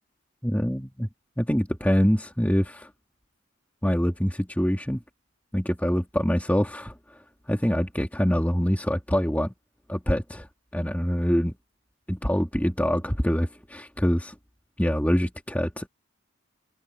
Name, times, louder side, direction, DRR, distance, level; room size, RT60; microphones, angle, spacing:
voice 1, 0.4-1.1 1.4-2.9 3.8-5.0 5.5-7.2 7.5-9.5 9.9-10.5 10.7-11.5 12.1-14.4 14.8-15.9, equal, 5° left, 2.4 m, -25 dB
open air
head